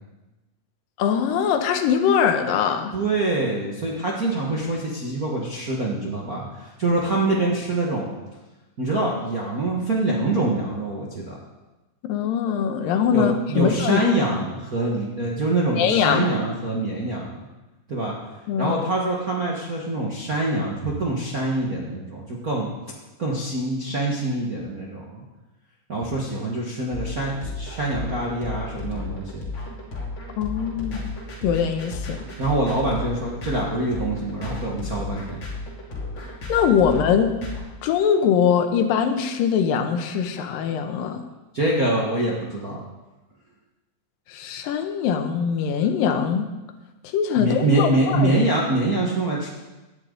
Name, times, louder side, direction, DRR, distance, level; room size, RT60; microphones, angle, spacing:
voice 1, 1.0-2.9 12.0-14.1 15.8-16.3 18.5-18.8 30.4-31.1 31.4-32.3 36.5-37.4 37.8-41.2 44.3-46.5 47.0-48.4, left 7 dB, 85° left, 6 dB, 2.7 m, -22 dB
voice 2, 2.9-8.1 8.8-11.4 13.1-17.3 17.9-18.1 18.6-22.7 23.2-25.2 25.9-29.5 32.4-35.4 41.5-42.8 47.4-49.5, right 2 dB, 45° right, -4 dB, 1.1 m, -25 dB
sound 1, 26.9-37.6, left 3 dB, 40° left, 3.1 m, -33 dB
17.0 x 10.5 x 3.9 m, 1.1 s
omnidirectional pair, 3.9 m